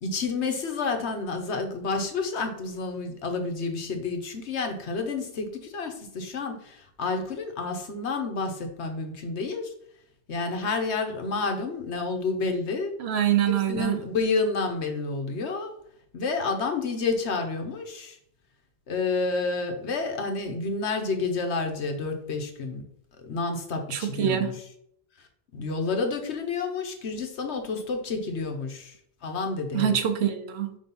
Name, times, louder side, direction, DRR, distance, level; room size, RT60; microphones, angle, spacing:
voice 1, 0.0-9.7 10.3-13.0 13.7-15.7 16.1-18.2 18.9-22.9 23.2-24.5 25.2-25.3 25.5-30.0, left 4 dB, 80° left, 1.3 m, -29 dB
voice 2, 13.0-14.0 23.9-24.6 29.7-30.8, right 10 dB, 75° right, 0.9 m, -25 dB
5.7 x 3.5 x 5.3 m
omnidirectional pair, 1.1 m